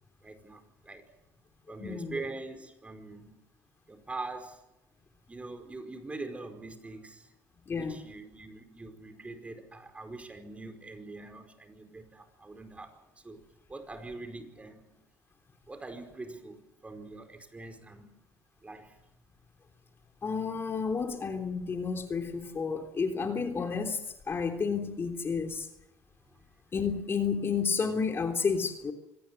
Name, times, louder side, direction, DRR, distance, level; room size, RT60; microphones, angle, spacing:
voice 1, 0.2-1.0 1.7-3.4 3.9-4.6 5.3-7.3 7.8-13.4 13.7-15.0 15.7-18.1 18.6-19.0 26.3-26.4, right 3 dB, 20° right, 5.0 m, -43 dB
voice 2, 1.8-2.2 7.7-8.0 20.2-25.7 26.7-28.9, left 5 dB, 35° left, 3.3 m, -31 dB
25.5 x 19.0 x 7.8 m
supercardioid pair, 90°, 7 cm